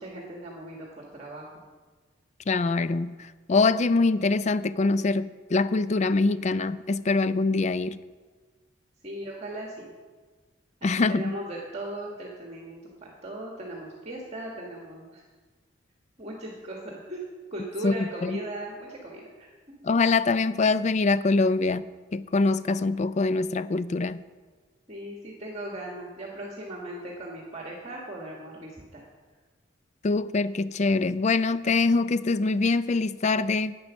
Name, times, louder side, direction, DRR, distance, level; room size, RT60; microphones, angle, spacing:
voice 1, 0.0-1.5 9.0-9.9 10.8-12.9 13.2-15.2 16.2-17.2 17.5-19.5 24.9-29.0, right 1 dB, 35° right, 1.6 m, -38 dB
voice 2, 2.5-3.2 3.5-8.0 10.8-11.3 17.8-17.9 18.2-18.4 19.8-24.2 30.0-33.8, left 3 dB, 35° left, 0.4 m, -24 dB
10.5 x 9.0 x 6.2 m
head